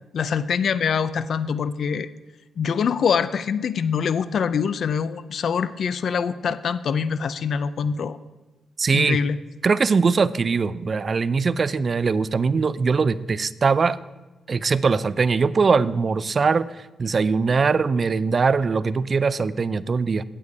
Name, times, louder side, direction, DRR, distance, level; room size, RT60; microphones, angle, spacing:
voice 1, 0.1-2.1 2.6-8.2 8.9-9.4, left 6 dB, 60° left, 14 dB, 0.4 m, -24 dB
voice 2, 8.8-9.2 9.6-14.0 14.5-16.7 17.0-20.2, right 4 dB, 40° right, 16 dB, 0.3 m, -21 dB
8.6 x 8.5 x 4.7 m, 1.1 s
cardioid pair, 110°, 0 cm